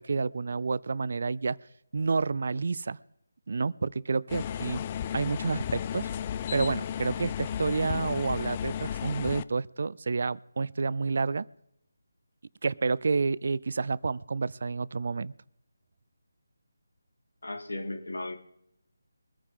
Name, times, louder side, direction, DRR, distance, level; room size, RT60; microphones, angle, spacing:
voice 1, 0.0-1.6 1.9-3.0 3.5-4.8 5.1-6.1 6.5-11.5 12.6-15.3, right 4 dB, 55° right, 22 dB, 0.5 m, -29 dB
sound 1, 4.3-9.4, left 9 dB, 25° left, 0.4 m, -34 dB
voice 2, 17.4-18.4, left 2 dB, 85° left, 6 dB, 2.5 m, -35 dB
22.5 x 9.6 x 3.8 m, 0.79 s
figure-of-eight pair, 160°, 0 cm